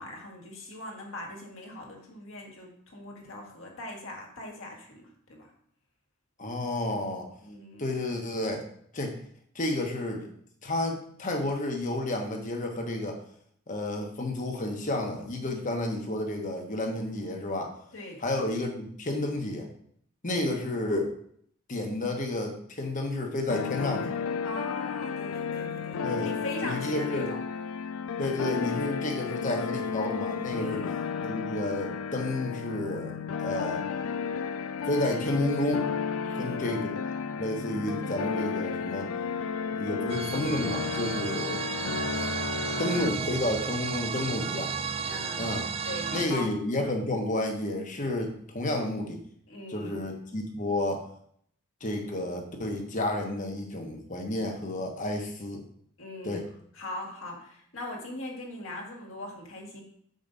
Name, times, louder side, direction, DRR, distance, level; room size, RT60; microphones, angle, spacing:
voice 1, 0.0-5.5 7.4-7.9 17.9-18.2 24.4-27.4 30.6-30.9 36.2-36.7 45.0-45.5 45.8-46.5 49.5-50.0 56.0-56.5 56.7-59.8, left 1 dB, 65° left, -1 dB, 1.8 m, -41 dB
voice 2, 6.4-7.3 7.8-8.6 8.9-9.2 9.5-10.3 10.6-13.2 13.7-17.8 18.2-19.7 20.2-21.1 21.7-24.1 26.0-26.3 26.6-27.3 28.2-30.8 31.2-33.8 34.9-35.9 36.4-37.0 37.3-39.1 39.8-41.6 42.8-44.7 45.4-45.7 46.1-49.2 49.7-51.1 51.8-55.7 56.2-56.4, left 1 dB, 35° left, 2 dB, 1.2 m, -31 dB
sound 1, 23.5-43.1, left 6 dB, 85° left, 0.4 m, -33 dB
sound 2, 40.1-46.3, right 6 dB, 30° right, 0.4 m, -33 dB
6.9 x 5.2 x 4.0 m, 0.64 s
head